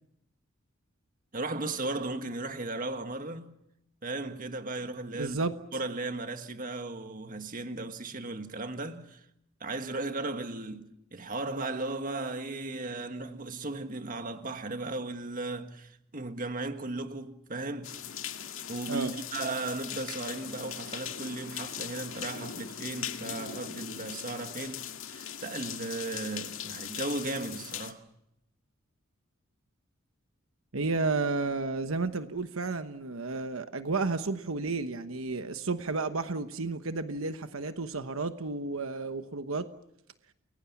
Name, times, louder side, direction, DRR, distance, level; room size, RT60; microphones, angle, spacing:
voice 1, 1.3-3.5 4.0-5.4 5.7-9.2 9.6-17.9 18.7-28.0, right 2 dB, 40° right, 1.7 m, -36 dB
voice 2, 5.1-5.5 18.9-19.1 30.7-39.7, right 3 dB, 80° right, 1.1 m, -32 dB
sound 1, 17.8-27.9, left 9 dB, 70° left, 2.0 m, -40 dB
29.5 x 21.5 x 7.2 m
head